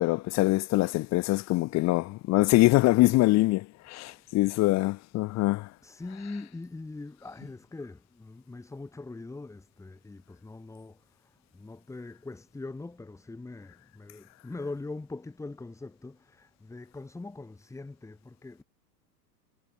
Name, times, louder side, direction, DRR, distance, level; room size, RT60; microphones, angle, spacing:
voice 1, 0.0-5.7, left 19 dB, 35° left, 1.2 m, -24 dB
voice 2, 4.1-4.4 5.8-18.6, left 3 dB, 5° left, 1.8 m, -42 dB
hypercardioid pair, 125°, 48 cm